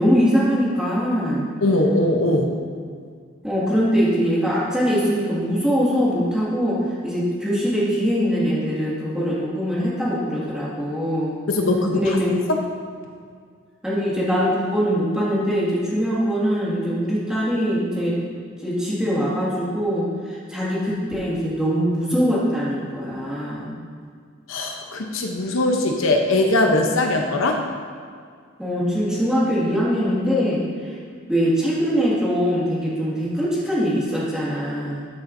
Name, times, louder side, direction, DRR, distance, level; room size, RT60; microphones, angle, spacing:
voice 1, 0.0-1.5 3.4-6.8 7.0-11.4 11.9-12.4 13.8-18.2 18.6-23.7 28.6-31.0 31.3-35.1, equal, 5° right, -8 dB, 2.1 m, -22 dB
voice 2, 1.6-2.5 11.5-12.0 12.5-12.6 24.5-27.6, left 2 dB, 85° left, 3 dB, 0.9 m, -20 dB
13.5 x 7.1 x 2.7 m, 2.1 s
head